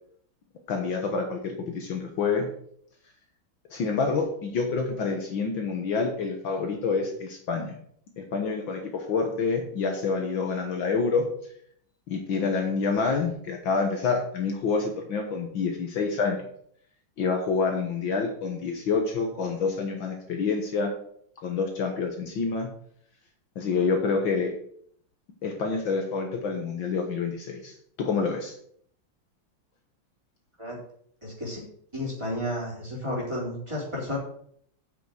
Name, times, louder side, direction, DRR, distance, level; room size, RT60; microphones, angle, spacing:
voice 1, 0.7-2.5 3.7-7.8 8.2-11.3 12.1-16.4 17.2-21.0 21.4-22.7 23.6-24.5 25.4-27.7 28.0-28.5, left 4 dB, 65° left, 3 dB, 1.9 m, -27 dB
voice 2, 31.2-31.6 31.9-34.2, left 1 dB, 10° right, -6 dB, 3.9 m, -32 dB
7.9 x 6.4 x 6.4 m, 0.64 s
omnidirectional pair, 2.4 m